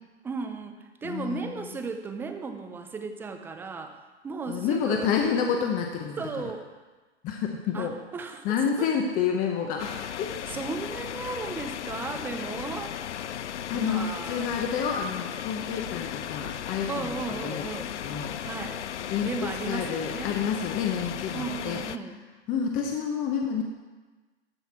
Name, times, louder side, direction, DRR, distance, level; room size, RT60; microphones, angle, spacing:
voice 1, 0.2-4.0 4.2-5.1 6.2-6.7 7.7-8.9 10.0-12.9 13.7-14.6 16.9-18.0 18.4-18.8 19.2-20.3 21.3-22.2, right 4 dB, 5° right, 6 dB, 0.5 m, -35 dB
voice 2, 1.0-1.7 4.5-6.2 7.2-7.9 8.4-10.3 13.7-17.7 18.0-18.4 19.0-21.8 22.5-23.6, left 7 dB, 25° left, 2 dB, 0.8 m, -29 dB
sound 1, 9.8-22.0, left 10 dB, 85° left, 0.5 m, -36 dB
13.5 x 5.8 x 4.4 m, 1.3 s
hypercardioid pair, 120°, 34 cm